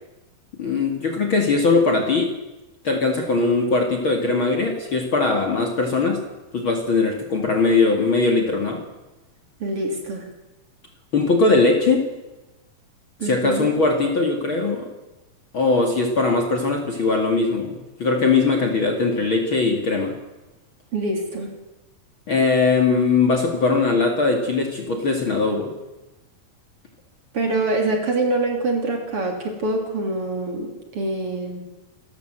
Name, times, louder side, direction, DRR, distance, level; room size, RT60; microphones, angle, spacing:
voice 1, 0.6-2.3 2.8-6.2 6.5-8.8 11.1-12.1 13.2-14.9 15.5-20.1 22.3-25.7, left 3 dB, 40° left, 2 dB, 2.5 m, -20 dB
voice 2, 9.6-10.3 13.2-13.8 20.9-21.5 27.3-31.7, right 2 dB, 40° right, 3 dB, 3.4 m, -25 dB
28.5 x 14.0 x 8.0 m, 1.0 s
omnidirectional pair, 4.2 m